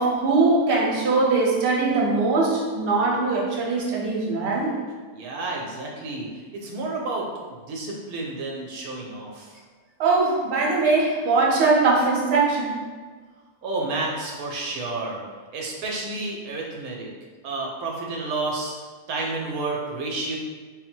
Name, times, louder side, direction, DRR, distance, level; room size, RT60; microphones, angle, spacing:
voice 1, 0.0-4.8 10.0-12.8, right 3 dB, 45° right, -4 dB, 0.9 m, -21 dB
voice 2, 5.1-9.5 13.6-15.2 15.5-17.1 17.4-18.8 19.1-20.4, right 2 dB, 80° right, -1 dB, 1.0 m, -30 dB
3.9 x 2.0 x 4.4 m, 1.5 s
omnidirectional pair, 1.6 m